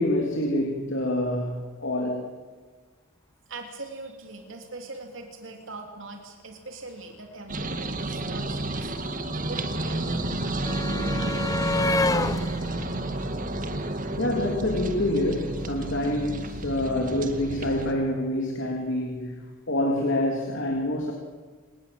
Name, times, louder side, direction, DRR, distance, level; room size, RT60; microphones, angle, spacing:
voice 1, 0.0-2.3 14.2-19.4 19.7-21.1, left 1 dB, 60° left, 1 dB, 3.4 m, -26 dB
voice 2, 3.5-10.5, right 2 dB, 60° right, 3 dB, 3.3 m, -41 dB
sound 1, 7.5-17.9, right 2 dB, 40° right, 2.1 m, -31 dB
sound 2, 7.8-7.9 8.1-14.3 15.5-15.6 15.9-16.0, left 2 dB, 15° left, 0.9 m, -31 dB
29.0 x 18.5 x 7.9 m, 1.4 s
head